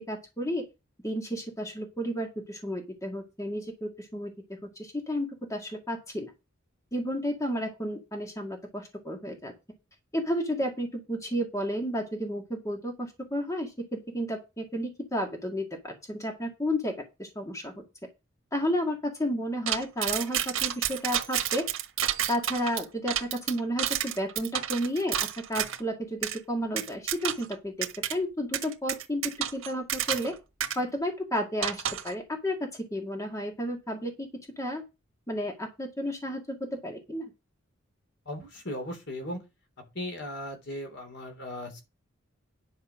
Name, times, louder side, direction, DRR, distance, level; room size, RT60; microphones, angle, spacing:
voice 1, 0.1-0.6 1.0-4.3 4.8-6.3 6.9-9.5 10.1-17.7 18.5-21.7 22.3-25.2 25.5-30.3 30.8-34.3 34.6-34.8 35.3-37.3, equal, 15° left, 1.9 m, -32 dB
sound 1, 19.7-25.8 26.2-26.4 26.8-27.5 27.8-28.1 28.5-30.3 30.6-30.8 31.6-32.1, right 10 dB, 80° right, 1.4 m, -30 dB
voice 2, 38.2-39.4 39.9-41.8, left 1 dB, 60° left, 3.3 m, -37 dB
10.5 x 5.6 x 6.2 m
head